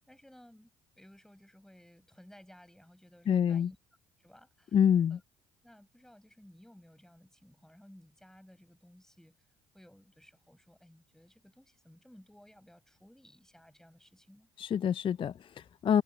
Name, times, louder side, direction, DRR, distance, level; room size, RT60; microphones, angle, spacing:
voice 1, 0.1-0.7 1.0-3.8 4.2-4.8 5.1-5.2 5.6-9.4 9.7-14.5, equal, 5° left, 5.7 m, -57 dB
voice 2, 3.3-3.7 4.7-5.2 14.6-16.0, left 8 dB, 40° left, 0.4 m, -27 dB
hypercardioid pair, 60°, 14 cm